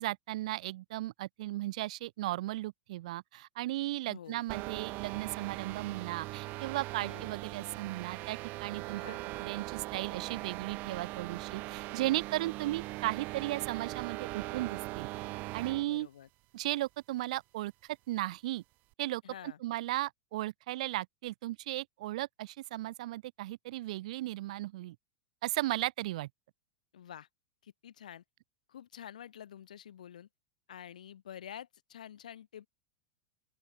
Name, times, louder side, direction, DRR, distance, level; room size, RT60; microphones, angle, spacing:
voice 1, 0.0-9.0 9.4-15.1 15.5-16.1 16.5-17.7 18.1-18.6 19.0-25.0 25.4-26.3, right 16 dB, 70° right, 0.4 m, -36 dB
voice 2, 4.0-4.4 7.0-7.3 8.9-9.2 15.8-16.3 19.2-19.6 26.9-27.3 27.6-28.2 28.7-30.3 30.7-32.7, left 10 dB, 90° left, 4.8 m, -48 dB
sound 1, 4.5-15.9, right 21 dB, 45° right, 2.0 m, -40 dB
open air
hypercardioid pair, 120°, 4 cm